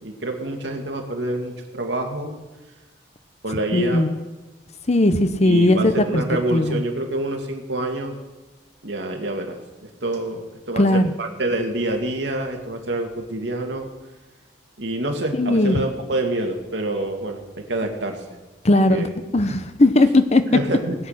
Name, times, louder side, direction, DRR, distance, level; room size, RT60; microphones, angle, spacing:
voice 1, 0.0-2.4 3.4-4.1 5.4-8.2 8.8-13.9 14.8-18.2 18.9-19.1 20.5-20.9, right 1 dB, 80° right, 2 dB, 2.3 m, -27 dB
voice 2, 3.7-4.2 4.9-6.2 6.5-6.8 10.8-11.1 15.3-15.8 18.6-19.1 19.3-20.4, left 1 dB, 40° left, 10 dB, 0.8 m, -18 dB
20.0 x 8.5 x 5.8 m, 1.2 s
head